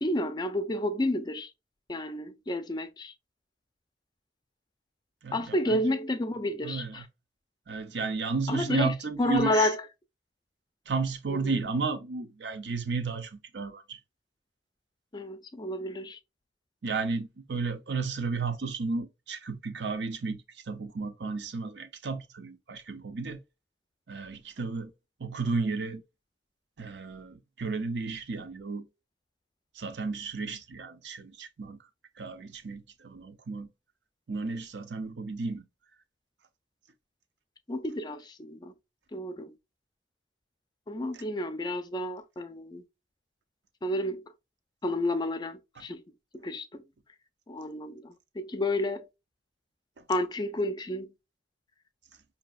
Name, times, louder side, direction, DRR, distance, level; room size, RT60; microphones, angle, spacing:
voice 1, 0.0-1.5 1.9-3.1 5.3-7.1 8.5-9.8 11.3-11.6 15.1-16.2 37.7-38.7 39.1-39.5 40.9-42.8 43.8-44.2 44.8-46.0 46.3-46.8 47.5-49.0 50.1-51.1, left 1 dB, 25° left, 0.5 m, -31 dB
voice 2, 5.2-5.8 6.6-7.0 7.7-9.7 10.9-14.0 16.8-23.4 24.1-24.9 25.2-26.0 26.8-28.9 29.8-31.8 32.2-33.7 34.3-35.7, right 4 dB, 75° right, 0.6 m, -33 dB
4.9 x 2.8 x 2.3 m
head